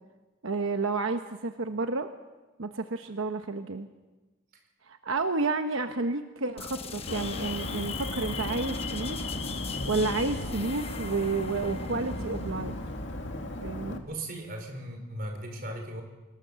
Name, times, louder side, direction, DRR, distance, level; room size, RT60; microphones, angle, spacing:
voice 1, 0.4-2.1 2.6-3.9 4.8-9.2 9.8-12.8 13.6-14.0, right 3 dB, 90° right, 7 dB, 1.0 m, -31 dB
sound 1, 6.6-14.1, left 3 dB, 30° left, 1.1 m, -42 dB
Alarm, 7.1-14.0, left 2 dB, 65° left, 2.2 m, -35 dB
voice 2, 14.0-16.0, right 1 dB, 45° right, 4 dB, 4.8 m, -37 dB
25.5 x 19.0 x 6.9 m, 1.2 s
head